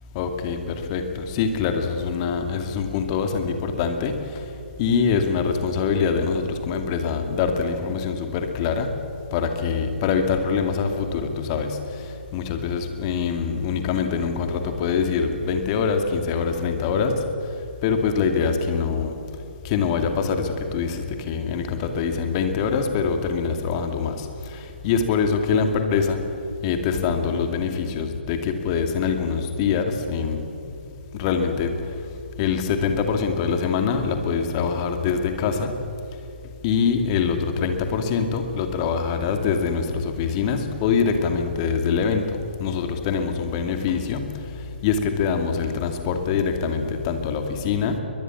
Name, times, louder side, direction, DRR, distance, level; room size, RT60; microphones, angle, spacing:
voice 1, 0.1-4.5 4.8-9.0 9.3-17.3 17.8-19.2 19.6-26.2 26.6-30.8 31.1-32.0 32.4-35.8 36.6-48.0, left 6 dB, 30° left, 5 dB, 2.4 m, -24 dB
22.5 x 21.0 x 7.5 m, 2.7 s
figure-of-eight pair, 130°, 6 cm